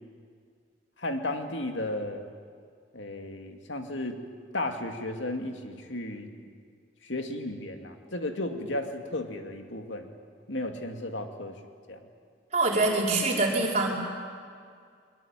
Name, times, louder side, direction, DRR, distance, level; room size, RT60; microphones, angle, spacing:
voice 1, 1.0-2.2 2.9-4.2 4.5-6.3 7.0-10.1 10.5-11.6 11.9-12.0, left 1 dB, 85° left, 5 dB, 2.4 m, -34 dB
voice 2, 12.5-13.9, right 2 dB, 40° right, -3 dB, 5.4 m, -24 dB
23.0 x 22.0 x 9.0 m, 2.1 s
head